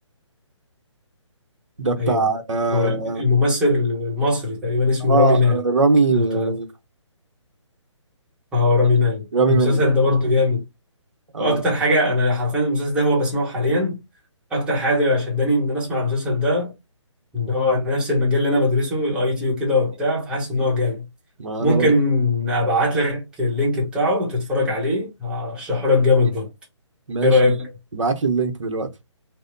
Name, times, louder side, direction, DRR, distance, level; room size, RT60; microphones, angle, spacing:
voice 1, 1.8-3.3 5.1-6.7 9.3-9.8 11.3-11.6 21.4-21.9 27.1-27.5 27.9-28.9, right 3 dB, 75° right, 0.7 m, -21 dB
voice 2, 2.7-5.6 6.1-6.5 8.5-10.6 11.4-14.0 14.5-16.7 17.3-21.0 21.6-26.5 27.2-27.7, left 2 dB, 5° right, 0.9 m, -20 dB
2.9 x 2.0 x 2.5 m
figure-of-eight pair, 140°, 16 cm